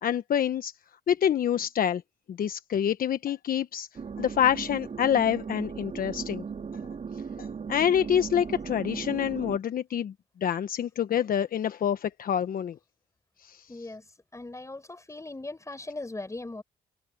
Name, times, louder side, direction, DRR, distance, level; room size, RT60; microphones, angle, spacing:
voice 1, 0.0-0.7 1.1-2.0 2.3-3.9 4.2-6.4 7.4-10.1 10.4-12.8 13.4-13.6, left 9 dB, 60° left, 1.2 m, -27 dB
sound 1, 4.0-9.6, right 6 dB, 45° right, 4.9 m, -37 dB
voice 2, 13.7-14.0 14.3-16.6, left 2 dB, 20° left, 5.7 m, -39 dB
cardioid pair, 75°, 17 cm